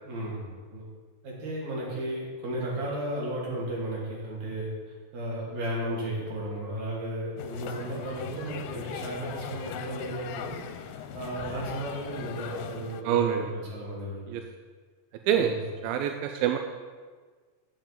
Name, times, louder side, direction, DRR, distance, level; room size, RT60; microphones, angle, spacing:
voice 1, 0.0-0.8 1.2-10.6 10.9-14.2 15.3-15.6, right 1 dB, 50° right, -4 dB, 3.9 m, -34 dB
sound 1, 7.4-13.0, left 9 dB, 85° left, 2.3 m, -39 dB
voice 2, 13.1-13.4 14.3-14.4 15.3-15.5 15.8-16.6, right 9 dB, 85° right, 5 dB, 2.4 m, -25 dB
7.9 x 7.1 x 7.3 m, 1.5 s
omnidirectional pair, 4.2 m